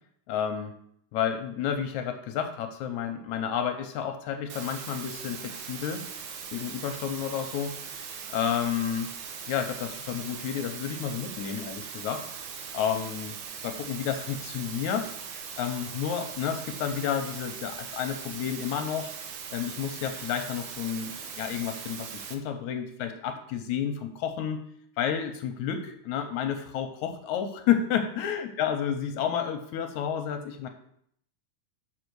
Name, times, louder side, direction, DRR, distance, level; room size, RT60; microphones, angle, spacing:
voice 1, 0.3-0.7 1.1-6.0 6.5-9.1 9.5-12.3 12.7-19.1 19.5-24.6 25.0-30.7, left 8 dB, 75° left, 5 dB, 1.9 m, -31 dB
sound 1, 4.5-22.3, right 6 dB, 75° right, 2.3 m, -40 dB
6.1 x 5.0 x 6.2 m, 0.68 s
omnidirectional pair, 3.7 m